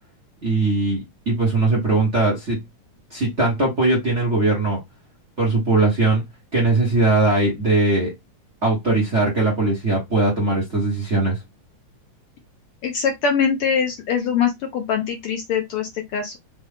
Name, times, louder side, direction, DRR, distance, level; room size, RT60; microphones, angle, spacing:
voice 1, 0.4-2.6 3.1-4.8 5.4-6.2 6.5-8.1 8.6-11.4, right 2 dB, 35° right, 1.1 m, -20 dB
voice 2, 12.8-16.4, left 6 dB, 75° left, 1.3 m, -23 dB
5.2 x 2.4 x 3.5 m
omnidirectional pair, 3.3 m